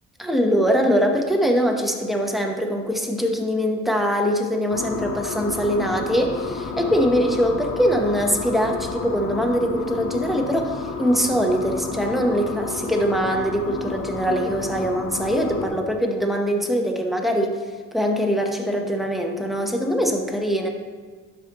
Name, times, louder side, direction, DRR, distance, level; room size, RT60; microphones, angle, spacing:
voice 1, 0.2-17.5 17.9-20.7, equal, ahead, 2 dB, 1.0 m, -22 dB
sound 1, 4.7-15.7, left 4 dB, 55° left, 1.0 m, -31 dB
12.0 x 5.1 x 3.0 m, 1.5 s
cardioid pair, 90°, 30 cm